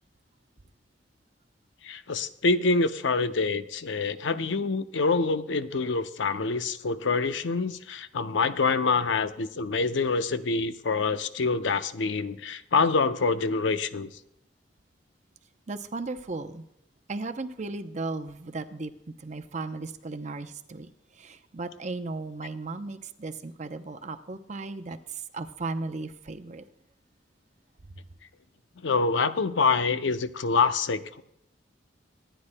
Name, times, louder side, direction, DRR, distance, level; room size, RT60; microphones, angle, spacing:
voice 1, 1.8-14.1 28.8-31.2, left 4 dB, 80° left, 11 dB, 0.6 m, -26 dB
voice 2, 15.7-16.6 17.1-18.9 19.2-26.6, right 3 dB, 40° right, 8 dB, 0.7 m, -36 dB
24.5 x 10.0 x 2.2 m, 0.80 s
head